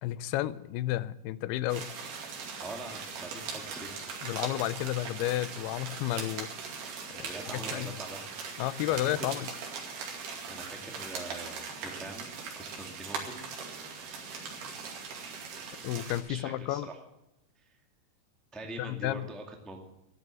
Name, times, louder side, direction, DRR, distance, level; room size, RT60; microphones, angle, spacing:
voice 1, 0.0-1.9 4.2-6.5 7.2-7.9 8.6-9.5 15.8-16.9 18.8-19.3, left 15 dB, 85° left, 17 dB, 2.6 m, -32 dB
sound 1, 1.7-16.2, right 5 dB, 80° right, 4.4 m, -40 dB
voice 2, 2.6-3.9 7.1-8.3 8.9-9.4 10.5-13.5 16.3-17.0 17.7-17.8 18.5-19.8, right 2 dB, ahead, 2 dB, 0.6 m, -43 dB
14.5 x 11.0 x 7.7 m, 0.92 s
omnidirectional pair, 4.5 m